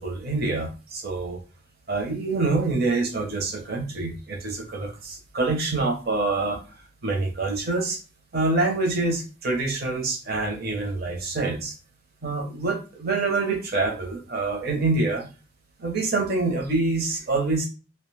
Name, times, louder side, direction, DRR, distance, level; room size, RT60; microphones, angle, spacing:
voice 1, 0.0-1.4 1.9-6.6 7.0-8.0 8.3-11.7 12.2-15.3 15.8-17.7, right 3 dB, 55° right, 2 dB, 0.8 m, -26 dB
2.7 x 2.2 x 3.2 m, 0.34 s
head